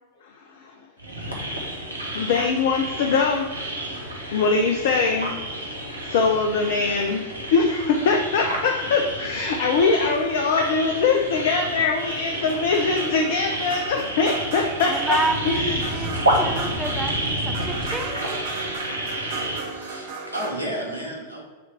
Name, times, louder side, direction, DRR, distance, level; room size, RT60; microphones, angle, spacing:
voice 1, 0.4-0.7 2.1-3.5 4.3-5.4 6.1-7.2 7.5-15.2 15.5-16.1, left 4 dB, 55° left, 2 dB, 0.6 m, -22 dB
sound 1, 1.0-19.6, right 1 dB, 80° right, 1.0 m, -30 dB
sound 2, 12.3-20.5, right 4 dB, 55° right, 0.9 m, -36 dB
voice 2, 14.9-18.6, right 2 dB, 10° right, 4 dB, 0.7 m, -30 dB
voice 3, 19.7-21.4, right 1 dB, 85° left, -3 dB, 1.7 m, -32 dB
6.9 x 3.2 x 5.6 m, 1.3 s
figure-of-eight pair, 90°, 0 cm